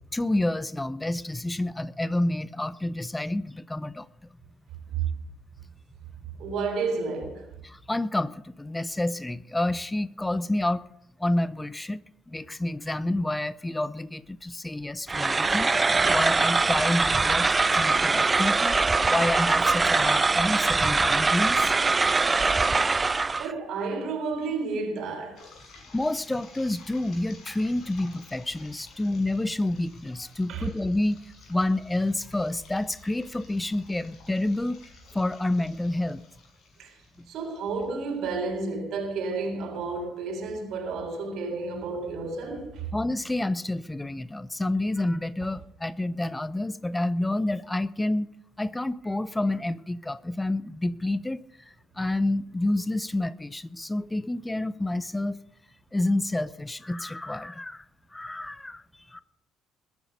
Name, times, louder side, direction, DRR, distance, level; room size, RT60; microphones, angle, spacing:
voice 1, 0.1-4.1 7.6-10.8 11.2-12.0 12.3-15.7 16.1-18.8 19.1-22.3 25.9-31.2 31.5-34.8 35.1-36.2 37.2-37.3 42.9-48.3 48.6-51.4 52.0-55.4 55.9-57.8 58.1-58.8 59.1-59.2, left 1 dB, 15° left, 0.8 m, -29 dB
voice 2, 6.4-7.5 23.4-25.4 30.5-30.7 36.8-36.9 37.3-42.9, right 4 dB, 60° right, 3.9 m, -31 dB
sound 1, 15.1-23.5, right 3 dB, 25° right, 0.5 m, -23 dB
sound 2, 25.4-38.2, left 3 dB, 55° left, 7.0 m, -52 dB
21.0 x 10.0 x 5.3 m
figure-of-eight pair, 50°, 0 cm